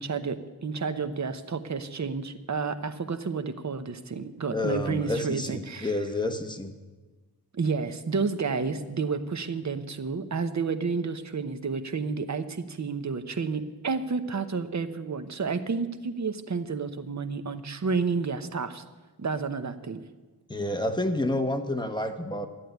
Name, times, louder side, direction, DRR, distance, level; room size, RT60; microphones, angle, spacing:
voice 1, 0.0-6.0 7.5-18.8 19.2-20.0, right 5 dB, 45° right, 9 dB, 0.9 m, -30 dB
voice 2, 4.5-6.7 20.5-22.5, left 1 dB, 10° left, 5 dB, 1.1 m, -29 dB
11.5 x 8.4 x 9.3 m, 1.2 s
wide cardioid pair, 100°, 39 cm